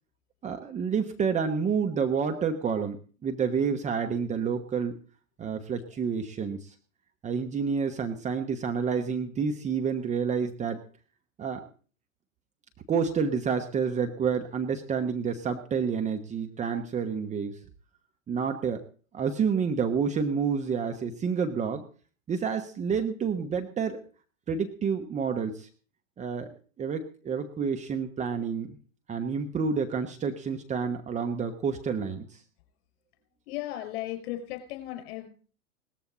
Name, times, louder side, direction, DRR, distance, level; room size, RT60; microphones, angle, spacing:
voice 1, 0.4-3.0 3.2-5.0 5.4-6.7 7.2-10.8 11.4-11.6 12.9-17.6 18.3-18.8 19.1-21.8 22.3-24.0 24.5-25.7 26.2-28.8 29.1-32.4, right 6 dB, 15° right, 5 dB, 1.2 m, -29 dB
voice 2, 33.5-35.3, left 14 dB, 45° left, 6 dB, 5.0 m, -36 dB
18.5 x 14.0 x 4.0 m, 0.40 s
figure-of-eight pair, 100°, 40 cm